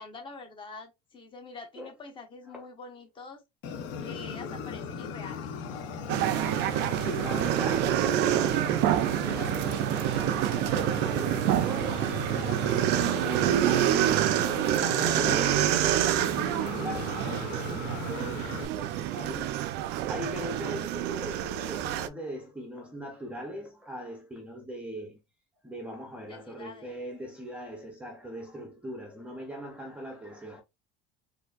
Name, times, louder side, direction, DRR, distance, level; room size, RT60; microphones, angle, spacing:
voice 1, 0.0-3.4 4.0-5.5 26.3-27.0, left 3 dB, 25° left, 0.8 m, -45 dB
Fire, 3.6-18.7, left 5 dB, 65° left, 0.8 m, -38 dB
sound 1, 6.1-22.1, right 12 dB, 55° right, 0.4 m, -27 dB
voice 2, 7.0-14.1 14.8-19.6 20.1-25.2 25.6-30.6, equal, 5° right, 0.6 m, -40 dB
4.4 x 2.6 x 2.3 m
cardioid pair, 155°, 21 cm